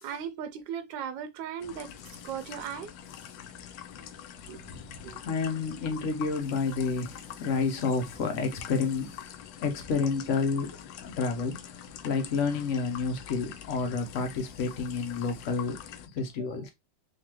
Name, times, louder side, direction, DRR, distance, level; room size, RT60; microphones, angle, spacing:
voice 1, 0.0-2.9 4.5-4.6 5.0-5.2, right 8 dB, 85° right, 1.3 m, -37 dB
sound 1, 1.6-16.1, left 9 dB, 85° left, 1.3 m, -45 dB
voice 2, 4.6-4.9 5.2-9.3 9.6-15.8 16.1-16.7, left 4 dB, 55° left, 1.0 m, -30 dB
3.8 x 2.7 x 3.0 m
omnidirectional pair, 2.0 m